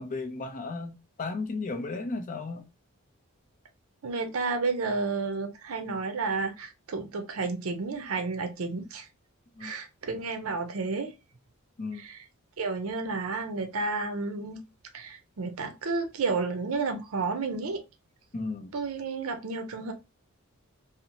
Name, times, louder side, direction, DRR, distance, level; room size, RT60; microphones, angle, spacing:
voice 1, 0.0-2.7 9.5-9.7 11.8-12.0 18.3-18.7, left 3 dB, 35° left, 0.5 m, -34 dB
voice 2, 4.0-9.1 9.6-11.1 12.0-12.2 12.6-14.6 14.9-17.8 18.7-19.9, right 4 dB, 70° right, 0.5 m, -31 dB
2.7 x 2.1 x 2.7 m
head